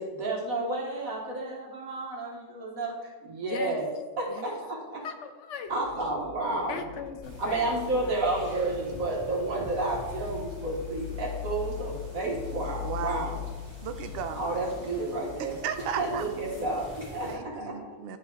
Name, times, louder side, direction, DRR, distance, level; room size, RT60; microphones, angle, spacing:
voice 1, 0.0-3.9 4.2-5.0 5.7-6.8 7.4-13.4 14.3-15.6 16.0-17.9, right 2 dB, 85° right, -3 dB, 2.0 m, -31 dB
voice 2, 3.5-3.8 4.3-4.5 5.0-5.7 6.7-8.2, left 7 dB, 70° left, 7 dB, 0.8 m, -39 dB
sound 1, 5.7-16.7, left 11 dB, 85° left, 1.3 m, -41 dB
sound 2, 7.2-17.3, left 1 dB, 15° right, 2.7 m, -47 dB
voice 3, 12.8-13.5 13.8-14.6 15.4-16.3 17.2-18.2, right 7 dB, 55° right, 8 dB, 0.7 m, -35 dB
10.5 x 5.5 x 3.0 m, 1.3 s
omnidirectional pair, 1.4 m